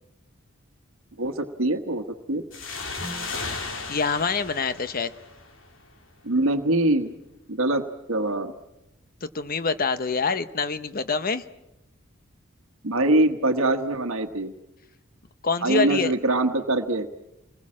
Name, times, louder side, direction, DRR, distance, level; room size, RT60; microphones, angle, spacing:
voice 1, 1.2-2.4 6.2-7.1 7.5-8.5 12.8-14.5 15.6-17.1, right 2 dB, 75° right, 5 dB, 1.3 m, -23 dB
sound 1, 2.5-5.9, left 4 dB, 70° left, 2.8 m, -35 dB
sound 2, 2.9-5.4, right 1 dB, 35° right, 2.5 m, -45 dB
voice 2, 3.9-5.1 9.2-11.4 15.4-16.1, left 4 dB, 45° left, 12 dB, 0.9 m, -25 dB
27.5 x 20.5 x 7.5 m, 0.90 s
head